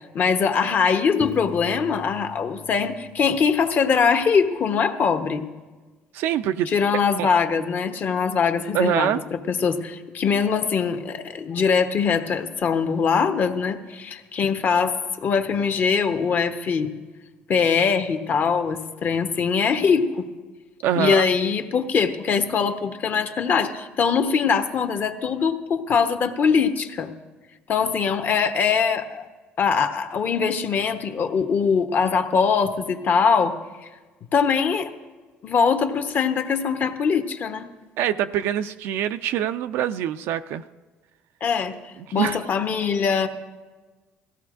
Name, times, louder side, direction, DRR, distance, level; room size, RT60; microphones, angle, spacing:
voice 1, 0.0-5.4 6.7-16.9 17.5-20.3 21.0-27.1 27.7-29.2 29.6-33.6 34.3-34.9 35.4-37.7 41.4-41.8 42.1-43.3, left 6 dB, 50° left, 8 dB, 0.9 m, -22 dB
Piano, 1.2-3.9, left 6 dB, 30° left, 0.5 m, -40 dB
voice 2, 6.1-6.7 7.2-7.3 8.7-9.2 20.8-21.2 38.0-40.6 42.0-42.4, right 10 dB, 80° right, 9 dB, 0.4 m, -24 dB
18.0 x 15.0 x 2.5 m, 1.3 s
cardioid pair, 95°, 4 cm